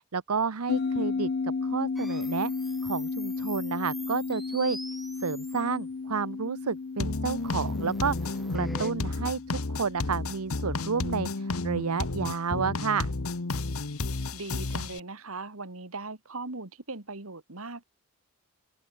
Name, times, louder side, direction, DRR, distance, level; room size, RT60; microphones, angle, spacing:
voice 1, 0.0-2.5 2.8-4.8 5.2-9.4 9.7-13.1, right 5 dB, 85° right, 0.9 m, -31 dB
sound 1, 0.7-13.5, left 4 dB, 45° left, 0.5 m, -35 dB
sound 2, 2.0-5.8 7.4-8.9, equal, ahead, 1.2 m, -44 dB
sound 3, 7.0-15.0, left 3 dB, 70° left, 1.2 m, -32 dB
voice 2, 14.3-17.8, right 3 dB, 70° right, 2.2 m, -39 dB
head